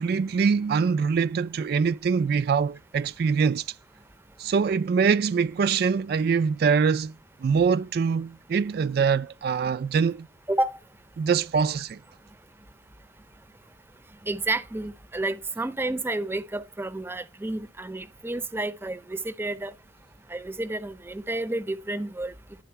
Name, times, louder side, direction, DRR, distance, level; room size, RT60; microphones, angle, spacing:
voice 1, 0.0-3.6 4.4-7.1 7.4-10.3 11.2-12.0, right 5 dB, 60° right, 0.3 m, -24 dB
voice 2, 10.5-10.8 14.2-19.7 20.3-22.3, right 2 dB, 15° right, 0.5 m, -30 dB
11.0 x 3.9 x 4.5 m
head